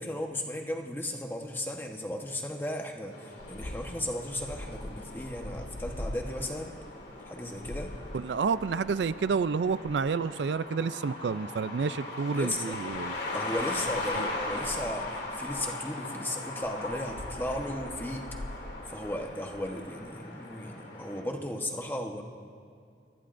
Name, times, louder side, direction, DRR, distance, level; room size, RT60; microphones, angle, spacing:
voice 1, 0.0-6.7 7.3-7.9 12.3-12.8 13.3-18.3 18.9-22.2, left 1 dB, 10° left, 2 dB, 1.1 m, -35 dB
sound 1, 3.1-21.2, left 2 dB, 80° left, 2.6 m, -39 dB
sound 2, 3.4-10.3 12.5-15.8 16.5-20.1, left 1 dB, 60° left, 0.9 m, -44 dB
voice 2, 8.1-13.1 14.1-14.2, right 5 dB, 80° right, 15 dB, 0.4 m, -29 dB
26.5 x 20.0 x 2.6 m, 2.4 s
head